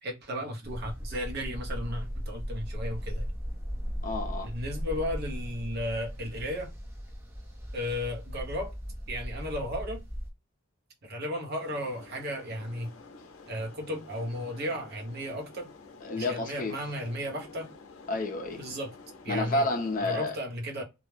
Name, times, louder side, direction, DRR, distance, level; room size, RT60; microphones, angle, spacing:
voice 1, 0.0-3.3 4.4-6.7 7.7-8.7 9.1-10.0 11.0-12.9 13.5-15.7 16.1-17.7 18.6-19.0 19.2-19.7 20.0-20.8, equal, 50° right, 0.6 m, -34 dB
sound 1, 0.6-10.3, equal, 10° right, 0.5 m, -37 dB
voice 2, 4.0-4.5 16.0-16.7 18.1-18.6 19.3-20.4, left 2 dB, 40° left, 0.5 m, -30 dB
sound 2, 11.6-20.3, left 3 dB, 85° left, 0.5 m, -50 dB
2.2 x 2.0 x 3.0 m
head